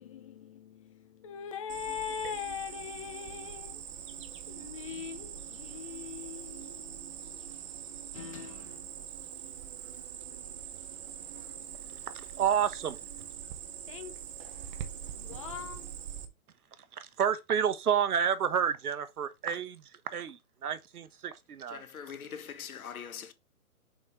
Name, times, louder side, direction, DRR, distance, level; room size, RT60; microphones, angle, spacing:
voice 1, 0.0-3.8 4.3-7.5 8.1-8.9 13.9-14.2 15.1-15.9, left 8 dB, 25° left, 0.5 m, -42 dB
Cricket, 1.7-16.3, right 9 dB, 20° right, 0.6 m, -43 dB
voice 2, 12.4-13.0 17.2-19.8 20.1-21.8, right 8 dB, 85° right, 1.1 m, -29 dB
voice 3, 21.7-23.3, left 7 dB, 75° left, 1.4 m, -42 dB
6.3 x 5.1 x 3.3 m
hypercardioid pair, 145°, 44 cm